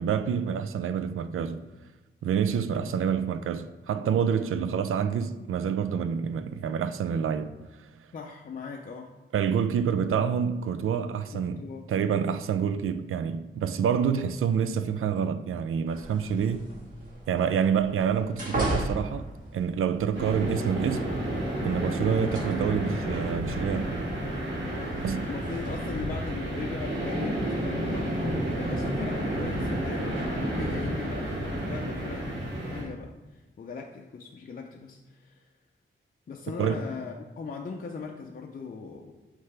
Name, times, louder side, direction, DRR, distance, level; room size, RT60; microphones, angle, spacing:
voice 1, 0.0-1.6 2.2-7.5 9.3-11.6 11.9-16.7 17.3-19.3 19.5-21.1 21.6-23.9 25.0-25.2 36.6-36.8, right 7 dB, 85° right, 0.4 m, -27 dB
voice 2, 8.1-9.1 11.3-12.2 24.6-24.9 25.2-35.5 36.3-39.1, left 5 dB, 45° left, 0.5 m, -40 dB
sound 1, 15.9-31.6, right 1 dB, 40° right, 1.6 m, -40 dB
sound 2, 20.1-32.8, right 1 dB, 65° right, 1.9 m, -31 dB
9.4 x 3.2 x 3.3 m
wide cardioid pair, 160°, 21 cm